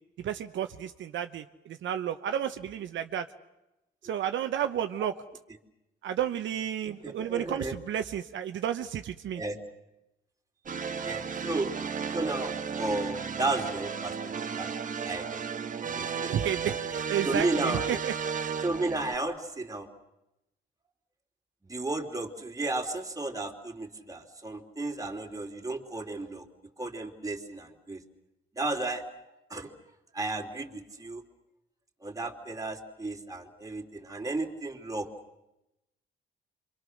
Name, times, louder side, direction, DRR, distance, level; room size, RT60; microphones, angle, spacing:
voice 1, 0.2-3.3 4.0-5.1 6.0-9.4 16.3-18.1, right 10 dB, 70° right, 7 dB, 1.0 m, -32 dB
voice 2, 6.8-7.8 9.4-9.6 11.0-11.7 12.1-14.1 14.5-14.7 15.0-15.4 15.9-16.3 16.6-16.8 17.2-17.8 18.6-19.9 21.6-26.5 26.8-28.0 28.5-29.0 29.5-29.7 30.1-31.2 32.0-35.1, right 2 dB, 15° right, 2 dB, 3.1 m, -33 dB
sound 1, 10.7-19.2, right 6 dB, 40° right, 1.4 m, -34 dB
27.5 x 24.5 x 6.4 m, 0.93 s
cardioid pair, 90°, 20 cm